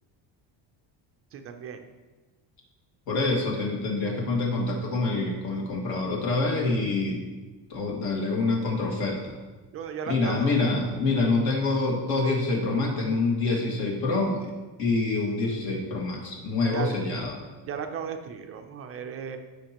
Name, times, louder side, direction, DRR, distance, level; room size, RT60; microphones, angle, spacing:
voice 1, 1.3-1.8 9.7-10.5 16.7-17.0 17.6-19.4, right 7 dB, 30° right, 5 dB, 0.5 m, -35 dB
voice 2, 3.1-7.2 7.7-9.3 10.1-14.5 14.8-17.3, left 3 dB, 55° left, -1 dB, 2.1 m, -26 dB
14.0 x 5.8 x 3.0 m, 1.2 s
cardioid pair, 175°, 45 cm